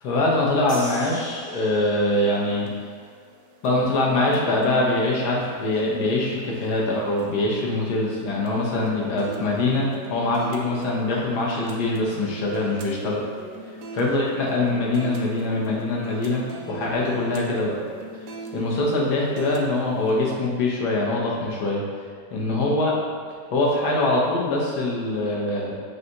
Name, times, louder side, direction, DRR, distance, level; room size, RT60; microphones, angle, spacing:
voice 1, 0.0-2.7 3.6-13.3 14.0-16.4 16.7-17.8 18.5-21.8 22.3-23.0 23.5-25.7, left 2 dB, 75° left, -3 dB, 1.4 m, -23 dB
sound 1, 0.7-2.2, right 1 dB, 55° left, 1.6 m, -40 dB
sound 2, 2.1-20.3, right 2 dB, 70° right, 0.8 m, -41 dB
6.8 x 2.7 x 2.9 m, 2.1 s
omnidirectional pair, 1.8 m